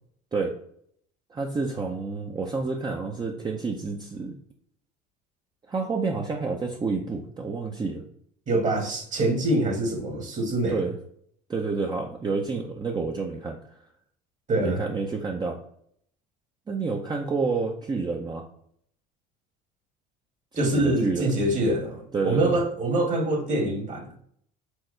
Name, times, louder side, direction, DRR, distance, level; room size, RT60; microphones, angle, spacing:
voice 1, 1.3-4.3 5.7-8.0 10.7-10.9 11.5-13.6 14.6-15.6 16.7-18.4 20.5-21.3 22.1-22.6, right 4 dB, 20° right, 0.6 m, -29 dB
voice 2, 8.5-10.8 14.5-14.8 20.5-24.2, right 1 dB, 35° right, 1.4 m, -25 dB
4.6 x 3.6 x 3.2 m
supercardioid pair, 105°, 21 cm